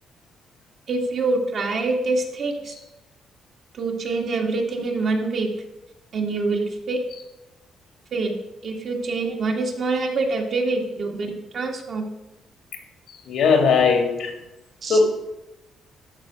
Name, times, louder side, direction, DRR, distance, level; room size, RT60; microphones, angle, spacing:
voice 1, 0.9-2.7 3.7-5.5 6.1-7.0 8.1-8.4 8.6-12.1 14.8-15.1, right 3 dB, 55° right, 1 dB, 2.0 m, -25 dB
voice 2, 13.3-14.3 14.9-15.1, left 5 dB, 75° left, 4 dB, 2.3 m, -18 dB
12.5 x 4.4 x 6.4 m, 0.95 s
cardioid pair, 90°, 0 cm